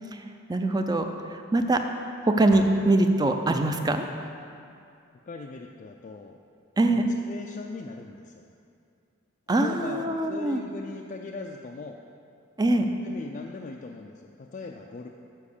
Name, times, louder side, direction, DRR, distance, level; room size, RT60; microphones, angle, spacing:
voice 1, 0.5-1.1 1.5-1.8 2.2-4.1 6.8-7.1 9.5-10.6 12.6-12.8, right 2 dB, 20° right, 6 dB, 0.5 m, -23 dB
sound 1, 2.5-4.3, right 1 dB, 60° right, 0.8 m, -45 dB
voice 2, 5.2-6.3 6.9-8.4 9.6-12.0 13.0-15.1, left 3 dB, 40° left, 1 dB, 0.4 m, -40 dB
7.3 x 5.8 x 6.7 m, 2.5 s
head